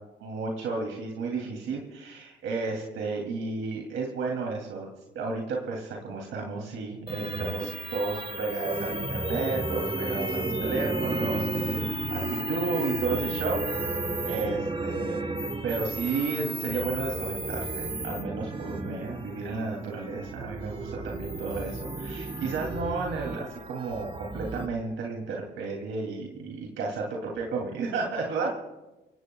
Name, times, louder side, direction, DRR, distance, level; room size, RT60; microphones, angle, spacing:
voice 1, 0.2-4.9 5.1-13.6 14.2-15.2 15.6-28.5, right 4 dB, 80° right, -1 dB, 2.8 m, -32 dB
sound 1, 7.1-24.7, right 2 dB, 25° right, 1.3 m, -33 dB
29.0 x 17.5 x 2.3 m, 1.1 s
cardioid pair, 90°, 20 cm